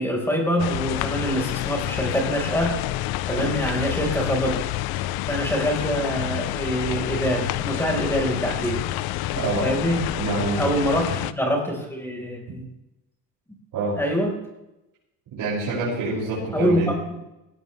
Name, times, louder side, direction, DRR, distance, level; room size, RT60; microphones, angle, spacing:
voice 1, 0.0-2.8 3.2-4.6 5.3-8.8 9.3-10.1 10.6-12.7 13.9-14.3 16.5-17.2, equal, 5° left, 0 dB, 5.0 m, -25 dB
sound 1, 0.6-11.3, left 15 dB, 85° left, 0.7 m, -28 dB
voice 2, 9.4-9.7 10.2-10.7 13.7-14.0 15.3-16.9, right 3 dB, 65° right, -8 dB, 7.0 m, -26 dB
20.0 x 16.5 x 3.5 m, 0.92 s
cardioid pair, 135°, 36 cm